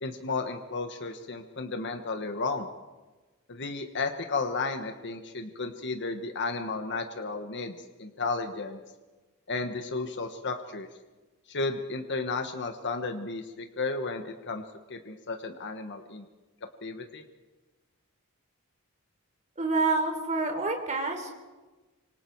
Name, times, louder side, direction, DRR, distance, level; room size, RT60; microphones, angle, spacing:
voice 1, 0.0-2.7 3.5-8.8 9.5-10.9 11.5-14.6 14.9-16.3 16.8-17.2, left 3 dB, 55° left, 5 dB, 1.4 m, -33 dB
voice 2, 19.6-21.3, right 3 dB, 35° right, 4 dB, 3.7 m, -27 dB
26.0 x 25.5 x 4.7 m, 1.2 s
head